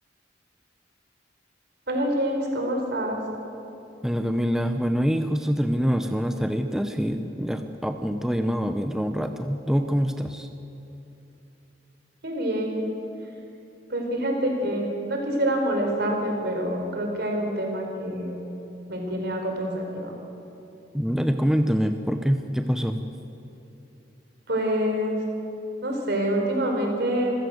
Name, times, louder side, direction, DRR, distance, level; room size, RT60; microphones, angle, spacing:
voice 1, 1.9-3.2 12.2-12.8 13.9-18.4 18.9-20.1 24.5-25.2 25.8-27.3, right 1 dB, 60° right, 1 dB, 4.8 m, -26 dB
voice 2, 4.0-10.5 20.9-23.0, equal, 5° right, 6 dB, 0.8 m, -25 dB
26.0 x 16.0 x 7.9 m, 3.0 s
head